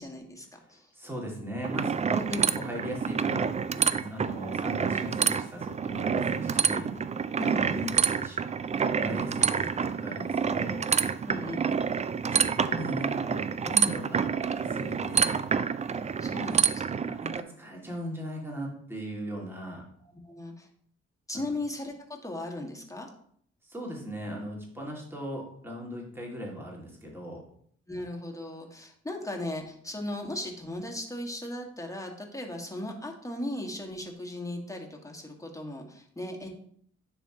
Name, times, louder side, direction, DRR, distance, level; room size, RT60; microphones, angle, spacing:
voice 1, 0.0-0.9 2.2-2.6 7.4-7.7 11.3-11.7 16.2-17.1 20.0-20.7 21.3-23.1 27.9-36.5, left 1 dB, 10° left, 1 dB, 1.8 m, -37 dB
voice 2, 0.9-6.9 7.6-8.4 8.9-10.9 12.3-15.4 17.0-19.8 21.3-21.5 23.6-27.4, equal, 5° right, -2 dB, 2.2 m, -38 dB
sound 1, 1.6-17.4, right 6 dB, 25° right, 0.3 m, -28 dB
9.9 x 3.5 x 2.9 m, 0.63 s
hypercardioid pair, 40°, 30 cm